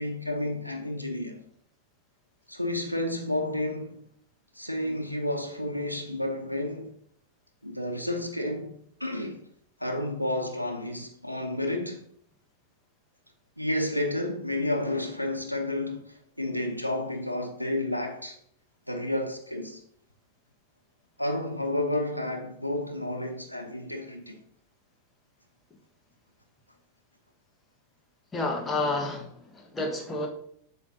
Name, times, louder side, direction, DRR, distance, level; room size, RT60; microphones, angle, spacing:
voice 1, 0.0-1.4 2.5-4.0 4.5-6.9 7.6-8.7 9.0-9.4 9.8-12.0 13.6-18.4 18.9-19.8 21.2-24.4, left 1 dB, 90° right, 0.7 m, -31 dB
voice 2, 28.3-30.3, left 2 dB, 15° left, 1.4 m, -30 dB
8.3 x 5.8 x 2.7 m
figure-of-eight pair, 90°, 0 cm